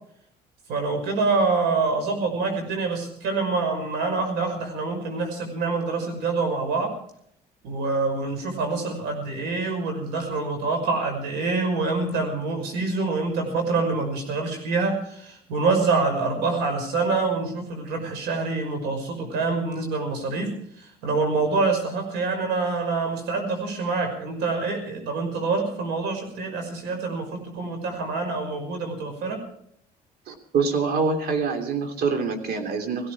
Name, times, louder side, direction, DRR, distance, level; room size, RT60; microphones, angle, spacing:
voice 1, 0.7-6.9 7.6-29.4, right 3 dB, 85° right, 5 dB, 5.7 m, -26 dB
voice 2, 30.3-33.1, right 5 dB, 70° right, 5 dB, 3.1 m, -25 dB
18.0 x 16.0 x 4.8 m, 0.68 s
cardioid pair, 110°, 17 cm